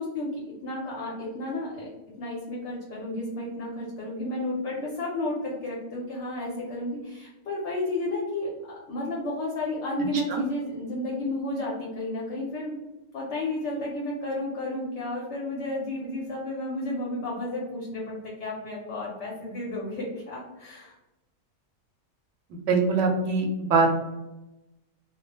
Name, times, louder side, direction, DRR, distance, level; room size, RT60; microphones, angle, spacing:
voice 1, 0.0-1.9 2.2-12.7 13.1-21.0, left 1 dB, 65° left, -4 dB, 0.8 m, -32 dB
voice 2, 22.7-23.9, right 4 dB, 70° right, 3 dB, 0.8 m, -22 dB
2.3 x 2.1 x 2.8 m, 0.96 s
omnidirectional pair, 1.4 m